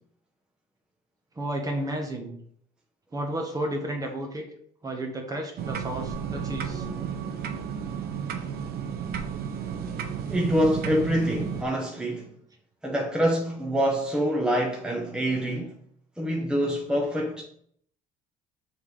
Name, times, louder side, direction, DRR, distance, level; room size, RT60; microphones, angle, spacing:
voice 1, 1.3-2.4 3.1-4.4 4.8-6.9, right 1 dB, 20° right, 1.5 m, -32 dB
sound 1, 5.6-11.6, right 8 dB, 65° right, 0.9 m, -33 dB
voice 2, 6.3-7.2 9.7-12.3 12.8-15.7 16.2-17.4, equal, 5° right, 1.2 m, -26 dB
6.4 x 3.8 x 4.9 m
cardioid pair, 110°, 17 cm